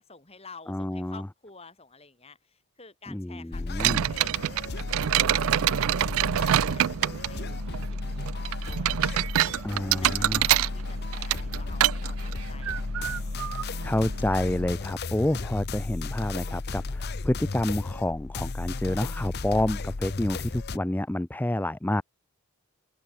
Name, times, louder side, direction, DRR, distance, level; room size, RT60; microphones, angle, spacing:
voice 1, 0.0-5.0 5.3-9.5 10.0-13.8, left 4 dB, 25° left, 4.4 m, -51 dB
voice 2, 0.7-1.3 3.1-4.0 9.6-10.4 13.8-22.0, left 1 dB, 10° left, 0.3 m, -28 dB
sound 1, 3.5-20.8, left 3 dB, 45° left, 0.7 m, -34 dB
sound 2, 3.8-14.7, right 12 dB, 70° right, 0.3 m, -27 dB
open air
head